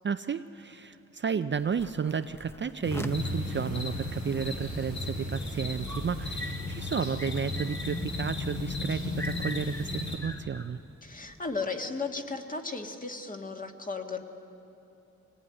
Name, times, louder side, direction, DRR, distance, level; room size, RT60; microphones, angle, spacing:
voice 1, 0.0-10.8, right 6 dB, 40° right, 10 dB, 0.5 m, -32 dB
sound 1, 1.5-11.5, equal, 10° left, 0.9 m, -45 dB
sound 2, 2.8-10.2, left 2 dB, 65° left, 5.0 m, -34 dB
voice 2, 11.0-14.2, left 4 dB, 25° left, 4 dB, 1.7 m, -35 dB
24.0 x 18.5 x 9.8 m, 2.9 s
wide cardioid pair, 110°, 30 cm